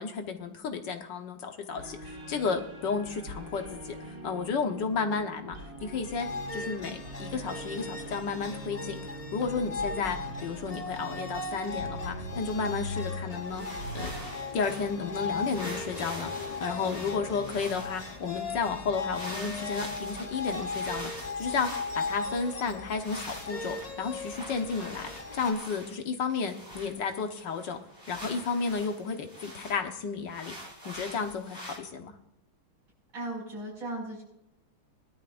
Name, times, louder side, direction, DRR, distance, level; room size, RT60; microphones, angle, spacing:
voice 1, 0.0-5.5 5.8-9.0 9.3-13.6 13.9-14.1 14.5-16.3 16.6-21.1 21.4-27.8 28.1-30.5 30.8-32.1, left 5 dB, 65° left, 5 dB, 1.7 m, -32 dB
sound 1, 1.7-14.3, equal, 65° right, 6.4 m, -42 dB
sound 2, 6.2-25.5, left 3 dB, 45° left, 0.4 m, -38 dB
sound 3, 13.4-15.1 15.4-18.2 19.1-22.7 23.0-26.0 26.3-29.8 30.3-31.8, equal, 10° right, 2.7 m, -45 dB
voice 2, 33.1-34.2, right 1 dB, 80° right, -3 dB, 7.0 m, -36 dB
21.0 x 12.0 x 2.6 m, 0.81 s
omnidirectional pair, 2.2 m